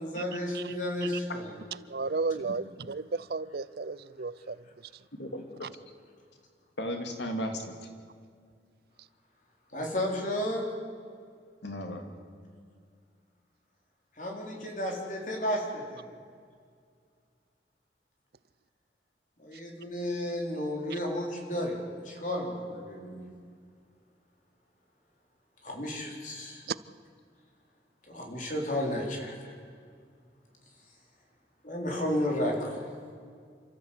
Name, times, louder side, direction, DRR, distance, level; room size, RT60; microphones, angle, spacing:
voice 1, 0.0-1.5 9.7-10.7 14.2-16.0 19.4-21.8 22.0-23.2 25.6-26.6 28.1-29.5 31.6-32.8, left 1 dB, 45° left, 0 dB, 4.1 m, -32 dB
voice 2, 1.9-4.6, right 3 dB, 60° right, 18 dB, 0.5 m, -33 dB
voice 3, 5.2-5.7 6.8-7.9 11.6-12.0, equal, 85° left, 4 dB, 2.7 m, -35 dB
28.0 x 13.5 x 8.3 m, 2.1 s
head